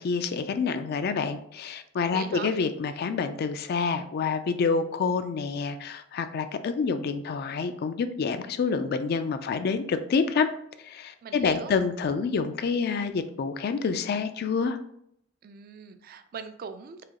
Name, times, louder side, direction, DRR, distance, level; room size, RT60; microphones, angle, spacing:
voice 1, 0.0-10.5 10.8-14.8, left 5 dB, 55° left, 10 dB, 0.3 m, -28 dB
voice 2, 2.1-2.5 11.2-11.7 15.4-17.0, right 6 dB, 50° right, 9 dB, 0.3 m, -40 dB
4.8 x 2.3 x 2.9 m, 0.71 s
head